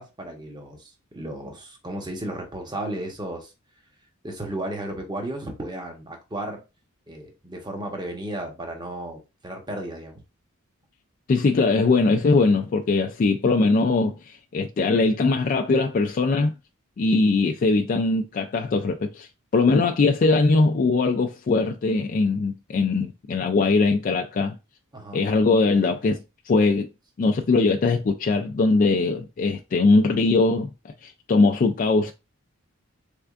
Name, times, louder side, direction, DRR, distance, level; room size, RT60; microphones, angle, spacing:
voice 1, 0.0-3.5 4.2-6.6 7.1-10.2 24.9-25.3, right 1 dB, 20° right, 0.9 m, -34 dB
voice 2, 11.3-16.5 17.0-24.6 25.1-26.9 27.2-30.7 31.0-32.1, left 3 dB, 40° left, 0.3 m, -21 dB
3.6 x 3.4 x 2.4 m
head